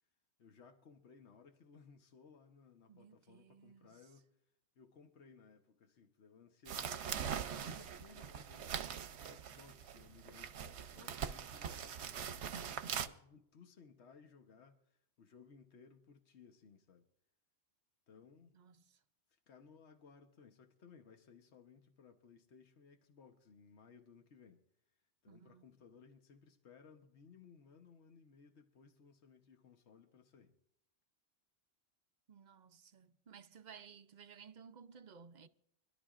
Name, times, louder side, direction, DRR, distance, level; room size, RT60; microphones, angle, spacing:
voice 1, 0.4-4.4 4.8-8.8 9.2-17.1 18.1-18.6 19.3-24.6 25.2-30.6, left 5 dB, 80° left, 1.3 m, -61 dB
voice 2, 2.9-4.0 18.5-19.0 25.3-25.8 32.3-35.5, right 6 dB, 50° right, 0.7 m, -57 dB
sound 1, 6.7-13.1, right 8 dB, 80° right, 1.0 m, -42 dB
25.0 x 12.0 x 2.5 m
omnidirectional pair, 1.1 m